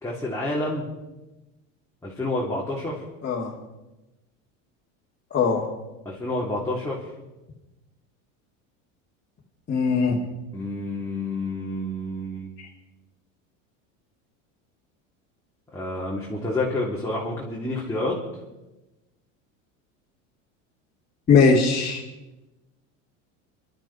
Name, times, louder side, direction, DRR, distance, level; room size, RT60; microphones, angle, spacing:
voice 1, 0.0-0.9 2.0-3.0 6.1-7.0 10.5-12.5 15.7-18.2, left 2 dB, 5° left, -6 dB, 3.7 m, -29 dB
voice 2, 5.3-5.6 9.7-10.2 21.3-22.0, left 5 dB, 30° left, -6 dB, 3.0 m, -19 dB
23.5 x 12.5 x 4.5 m, 1.0 s
supercardioid pair, 105°, 38 cm